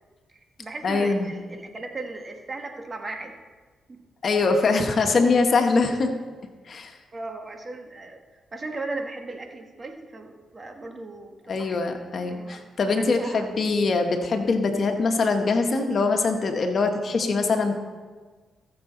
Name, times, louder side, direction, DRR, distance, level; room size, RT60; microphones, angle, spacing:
voice 1, 0.3-3.3 3.9-4.0 7.1-11.8 12.3-13.5, right 2 dB, 35° right, 4 dB, 1.7 m, -37 dB
voice 2, 0.8-1.3 4.2-6.1 6.7-6.9 11.5-17.7, left 3 dB, 55° left, 5 dB, 1.5 m, -23 dB
19.0 x 7.0 x 4.0 m, 1.4 s
supercardioid pair, 55°, 0 cm